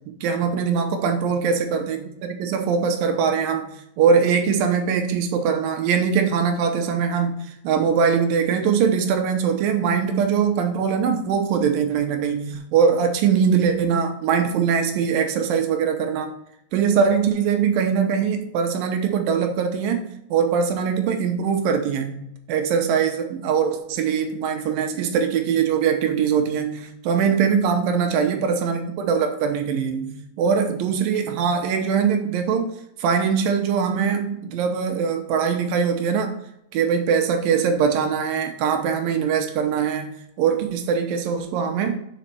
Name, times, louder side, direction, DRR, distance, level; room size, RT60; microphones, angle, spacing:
voice 1, 0.1-3.7 4.0-7.4 7.6-16.3 16.7-22.2 22.5-32.7 33.0-36.3 36.7-40.1 40.4-42.0, right 6 dB, 80° right, 5 dB, 2.5 m, -22 dB
5.5 x 5.1 x 5.8 m, 0.76 s
omnidirectional pair, 4.1 m